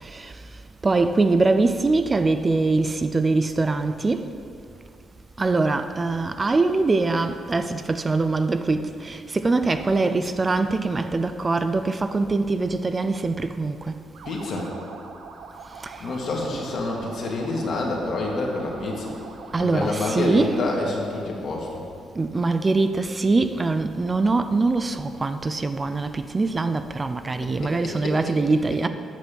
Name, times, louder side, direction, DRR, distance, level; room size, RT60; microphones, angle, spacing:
voice 1, 0.8-4.3 5.4-14.0 15.8-15.9 19.5-20.6 22.2-28.9, right 3 dB, 25° right, 0.4 m, -23 dB
sound 1, 14.1-20.9, right 5 dB, 85° right, 0.8 m, -43 dB
voice 2, 14.3-14.8 16.0-19.1 19.6-21.8 27.4-28.2 28.7-28.8, left 2 dB, 60° left, 1.9 m, -28 dB
8.2 x 6.0 x 6.9 m
cardioid pair, 90°, 0 cm